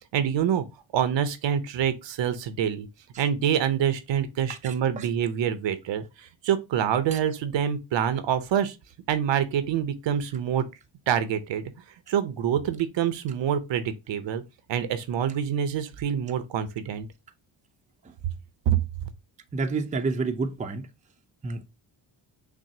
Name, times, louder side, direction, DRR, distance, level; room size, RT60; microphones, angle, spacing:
voice 1, 0.1-0.7 0.9-2.9 3.2-8.8 9.1-10.6 11.1-11.6 12.1-14.4 14.7-17.1 18.7-18.8, right 9 dB, 70° right, 0.7 m, -26 dB
voice 2, 4.6-5.1 7.1-7.2 19.5-20.9 21.4-21.6, right 3 dB, 15° right, 0.5 m, -29 dB
6.0 x 2.0 x 2.7 m
cardioid pair, 70°, 47 cm